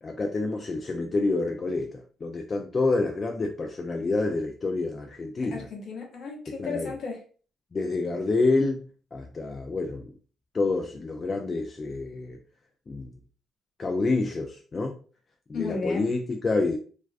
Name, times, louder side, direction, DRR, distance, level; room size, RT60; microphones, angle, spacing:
voice 1, 0.0-5.7 6.6-6.9 7.7-8.9 9.1-10.1 10.5-12.4 12.9-13.1 13.8-15.0 15.5-16.8, left 3 dB, 35° left, 0.3 m, -28 dB
voice 2, 5.5-7.2 15.5-16.1, left 4 dB, 65° left, 0.8 m, -34 dB
2.3 x 2.1 x 2.4 m
cardioid pair, 90°, 0 cm